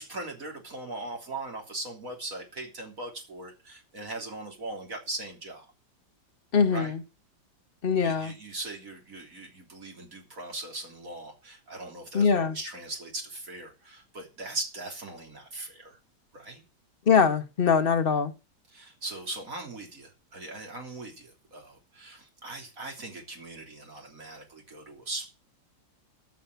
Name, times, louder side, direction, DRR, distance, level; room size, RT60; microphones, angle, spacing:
voice 1, 0.0-5.7 6.7-6.9 8.0-16.0 16.3-16.6 18.7-25.3, right 2 dB, 45° right, 3.7 m, -39 dB
voice 2, 6.5-7.0 7.8-8.3 12.1-12.6 17.1-18.3, left 6 dB, 40° left, 0.8 m, -22 dB
15.0 x 5.8 x 7.8 m
omnidirectional pair, 2.0 m